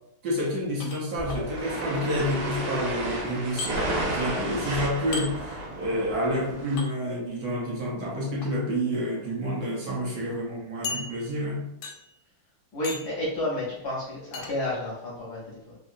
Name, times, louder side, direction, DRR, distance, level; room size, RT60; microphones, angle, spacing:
voice 1, 0.2-5.4 5.8-11.6, equal, 60° right, -4 dB, 1.1 m, -29 dB
Glass Hits, 0.8-1.4 3.6-3.7 5.1-5.3 6.8-6.9 8.2-8.5 9.2-9.3 9.7-9.8 10.8-11.5 11.8-12.2 12.8-13.2 14.3-14.5, left 4 dB, 85° left, 1.5 m, -35 dB
sound 1, 1.2-6.8, right 1 dB, 85° right, 1.8 m, -32 dB
voice 2, 12.7-15.8, left 1 dB, 70° left, -4 dB, 0.9 m, -31 dB
3.8 x 2.6 x 2.5 m, 0.85 s
omnidirectional pair, 2.4 m